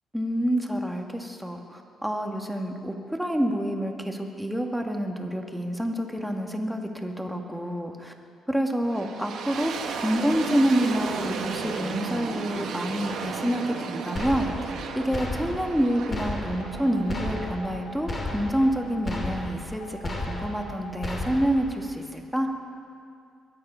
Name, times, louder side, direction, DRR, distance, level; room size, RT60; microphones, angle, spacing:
voice 1, 0.1-8.1 8.5-22.5, equal, ahead, 2 dB, 1.7 m, -28 dB
sound 1, 8.8-19.8, right 5 dB, 75° right, 1.4 m, -35 dB
sound 2, 14.1-14.8 15.1-15.8 16.1-16.8 17.1-17.8 18.1-18.8 19.0-19.7 20.0-20.7 21.0-21.7, left 2 dB, 30° left, 3.0 m, -33 dB
sound 3, 16.6-19.3 19.8-20.9 21.4-21.5, left 1 dB, 70° left, 1.9 m, -43 dB
22.5 x 9.8 x 5.6 m, 2.3 s
cardioid pair, 90°, 0 cm